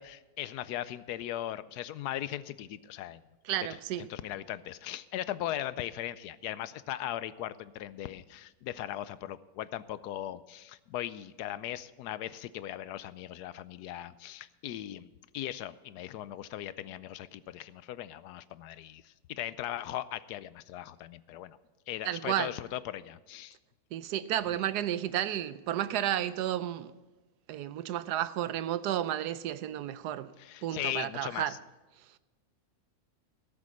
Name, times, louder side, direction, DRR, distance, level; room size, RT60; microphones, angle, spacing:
voice 1, 0.0-3.2 3.7-21.6 21.9-23.6 24.5-24.6 30.4-31.6, left 12 dB, 90° left, 1.2 m, -39 dB
voice 2, 3.5-4.1 22.0-22.5 23.9-26.9 27.5-30.4 30.6-31.6, right 12 dB, 90° right, 1.2 m, -32 dB
17.5 x 7.5 x 6.1 m
omnidirectional pair, 1.7 m